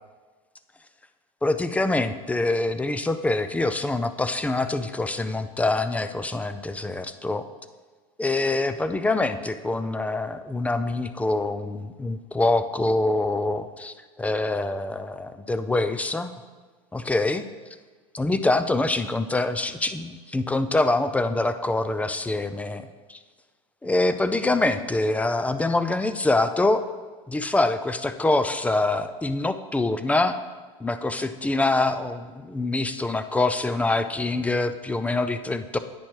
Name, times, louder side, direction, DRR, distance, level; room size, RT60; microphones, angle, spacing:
voice 1, 1.4-7.4 8.2-16.3 16.9-17.4 18.1-22.8 23.1-23.2 23.8-26.8 27.3-30.4 30.8-35.8, left 2 dB, 5° left, 11 dB, 0.4 m, -25 dB
10.0 x 8.7 x 3.1 m, 1.4 s
supercardioid pair, 120°, 19 cm